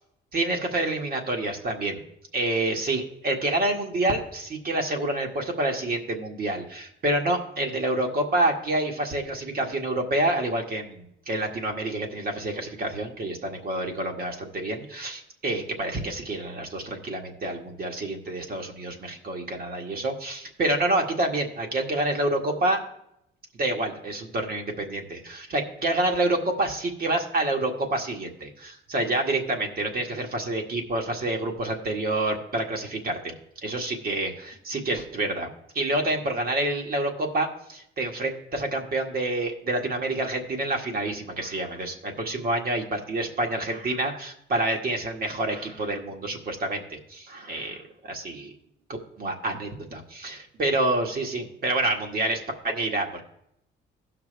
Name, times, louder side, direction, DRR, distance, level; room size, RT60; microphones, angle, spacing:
voice 1, 0.3-2.0 2.3-22.8 23.5-33.3 33.6-35.5 35.7-48.5 49.2-53.2, right 2 dB, 50° right, 2 dB, 1.8 m, -28 dB
16.0 x 6.0 x 3.4 m, 0.77 s
cardioid pair, 90°, 20 cm